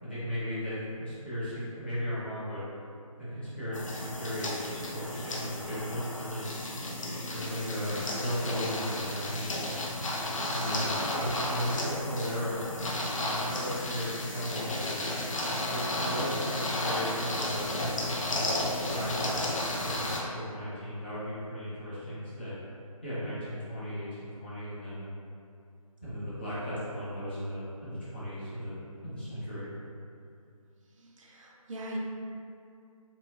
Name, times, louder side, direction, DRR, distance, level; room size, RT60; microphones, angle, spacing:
voice 1, 0.0-2.6 3.2-6.5 7.2-9.6 10.5-12.6 13.2-15.0 15.7-17.6 18.3-18.6 18.9-22.5 23.0-25.1 26.0-29.7, equal, 20° left, -12 dB, 0.5 m, -36 dB
sound 1, 3.7-20.2, left 1 dB, 60° left, 0.5 m, -33 dB
voice 2, 31.0-32.0, right 1 dB, 60° right, -2 dB, 0.4 m, -41 dB
2.9 x 2.3 x 2.4 m, 2.4 s
figure-of-eight pair, 160°, 19 cm